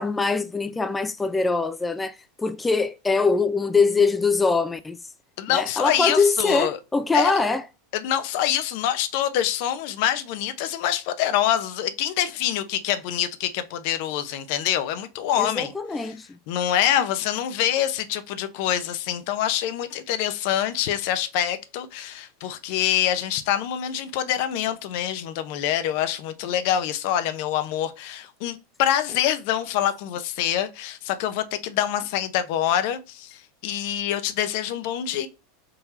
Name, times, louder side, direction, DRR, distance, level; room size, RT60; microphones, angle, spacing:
voice 1, 0.0-5.0 5.5-7.6 15.4-16.3, left 4 dB, 10° left, 0.3 m, -23 dB
voice 2, 5.4-6.8 7.1-7.3 7.9-15.7 16.0-16.1 16.5-35.3, left 11 dB, 60° left, 0.6 m, -25 dB
4.3 x 3.8 x 2.8 m
hypercardioid pair, 115°, 0 cm